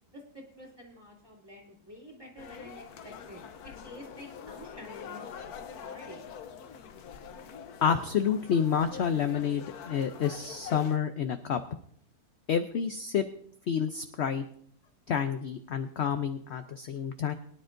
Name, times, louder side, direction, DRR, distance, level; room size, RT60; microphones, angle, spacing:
voice 1, 0.1-5.5 5.8-6.3, equal, 15° right, -3 dB, 2.7 m, -49 dB
sound 1, 2.4-11.0, left 7 dB, 80° left, 1.3 m, -45 dB
voice 2, 7.8-11.6 12.5-13.2 13.7-14.4 15.1-17.3, left 7 dB, 60° left, 8 dB, 0.8 m, -29 dB
22.5 x 10.0 x 2.6 m, 0.63 s
omnidirectional pair, 1.6 m